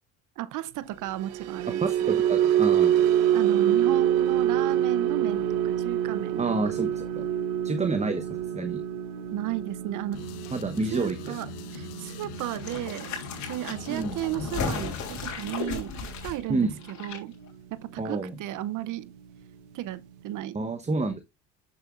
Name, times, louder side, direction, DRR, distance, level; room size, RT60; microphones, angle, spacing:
voice 1, 0.4-2.2 3.3-6.5 9.3-10.2 10.9-13.2 13.5-17.3 17.7-19.1 19.7-20.7, right 14 dB, 60° right, 0.7 m, -34 dB
sound 1, 1.0-17.4 17.8-18.1 18.4-18.6, right 10 dB, 80° right, 1.0 m, -27 dB
voice 2, 1.8-3.0 6.4-7.3 7.6-8.8 10.5-11.3 13.9-14.2 16.5-16.7 18.0-18.4 20.5-21.2, right 3 dB, 20° right, 1.0 m, -29 dB
sound 2, 10.1-15.4, left 9 dB, 85° left, 1.4 m, -43 dB
sound 3, 12.3-17.2 17.5-17.6, left 5 dB, 55° left, 3.3 m, -35 dB
10.5 x 7.0 x 2.5 m
supercardioid pair, 75°, 35 cm